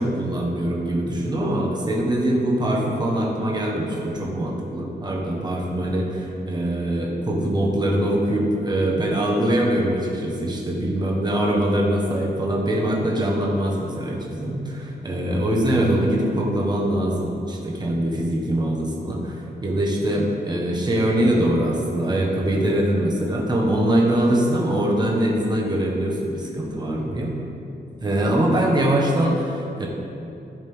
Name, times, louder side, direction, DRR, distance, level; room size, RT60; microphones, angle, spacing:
voice 1, 0.0-27.3 28.0-29.9, right 1 dB, 20° right, -2 dB, 1.3 m, -23 dB
14.5 x 5.2 x 3.6 m, 2.8 s
wide cardioid pair, 170°, 19 cm